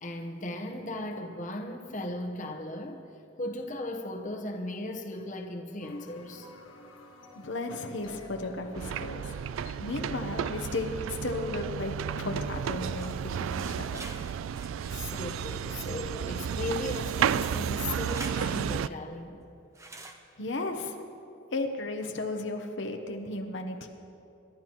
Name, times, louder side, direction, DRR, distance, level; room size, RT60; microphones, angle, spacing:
voice 1, 0.0-3.1 3.4-6.5 14.9-19.4, left 1 dB, 40° left, 3 dB, 1.0 m, -37 dB
sound 1, 5.8-11.0, left 2 dB, 85° left, 1.4 m, -50 dB
voice 2, 7.4-9.4 9.8-11.9 12.2-14.0 20.4-21.0 21.5-23.9, left 2 dB, 70° left, 4 dB, 0.9 m, -34 dB
sound 2, 8.7-18.9, right 8 dB, 85° right, 0.3 m, -32 dB
sound 3, 13.0-18.4 19.7-20.2, right 2 dB, 15° right, 0.8 m, -47 dB
27.5 x 12.0 x 3.0 m, 2.7 s
head